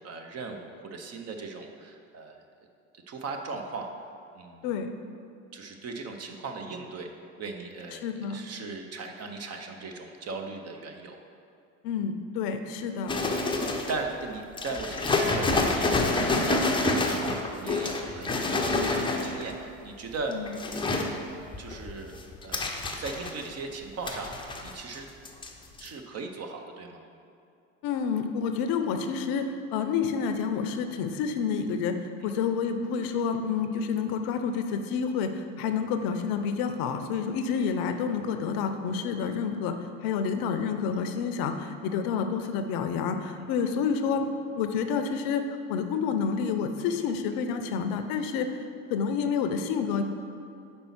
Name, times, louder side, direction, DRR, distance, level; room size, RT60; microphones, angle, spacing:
voice 1, 0.0-2.4 3.1-3.9 4.3-4.7 5.5-7.1 7.4-11.2 12.7-12.8 13.9-16.0 16.2-20.4 20.7-21.1 21.6-22.2 22.4-22.7 23.0-24.3 24.6-25.1 25.8-27.0 32.2-32.4 43.4-43.5, right 3 dB, 35° right, 4 dB, 0.8 m, -38 dB
voice 2, 7.9-8.4 11.8-13.1 20.3-20.5 27.8-32.0 32.2-39.7 40.0-44.3 44.6-45.4 45.7-48.5 48.9-50.0, left 6 dB, 55° left, 7 dB, 0.6 m, -29 dB
sound 1, 13.1-14.1 14.6-19.5 20.2-21.1 21.5-23.6 24.1-25.0 25.3-25.5 25.8-25.9, left 2 dB, 10° left, 0.6 m, -28 dB
5.3 x 4.2 x 5.9 m, 2.6 s
hypercardioid pair, 80°, 42 cm